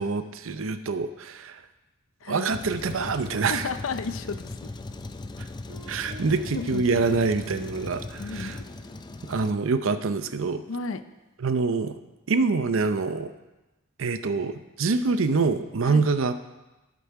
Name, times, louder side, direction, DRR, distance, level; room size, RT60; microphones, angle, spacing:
voice 1, 0.0-1.6 2.3-3.7 5.9-8.6 9.3-10.6 11.4-11.9 12.3-13.3 14.0-16.4, right 4 dB, 70° right, 10 dB, 0.6 m, -25 dB
Truck, 2.5-9.5, left 2 dB, 20° left, 0.4 m, -38 dB
voice 2, 3.4-4.7 6.5-6.8 8.2-8.7 10.7-11.0 15.8-16.0, left 4 dB, 70° left, 11 dB, 0.6 m, -33 dB
Guitar, 5.7-10.4, equal, 85° right, 2.0 m, -49 dB
12.0 x 7.0 x 4.7 m, 1.1 s
head